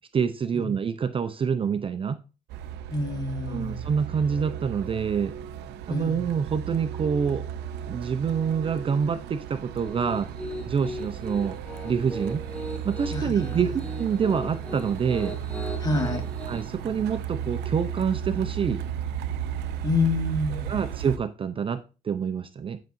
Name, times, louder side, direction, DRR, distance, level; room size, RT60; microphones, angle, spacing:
voice 1, 0.1-2.2 3.5-5.3 5.9-7.4 7.8-10.3 10.6-11.6 11.8-12.4 12.8-15.4 16.5-18.8 20.5-22.8, right 6 dB, 30° right, 10 dB, 0.6 m, -27 dB
Truck, 2.5-21.2, right 9 dB, 80° right, 0.6 m, -35 dB
voice 2, 2.9-3.9 5.9-6.2 13.1-13.5 15.8-16.2 19.8-20.8, left 3 dB, 25° left, 4 dB, 1.9 m, -27 dB
Piano, 9.8-16.6, equal, 5° left, 2.0 m, -38 dB
10.5 x 6.7 x 2.6 m, 0.32 s
cardioid pair, 110°, 17 cm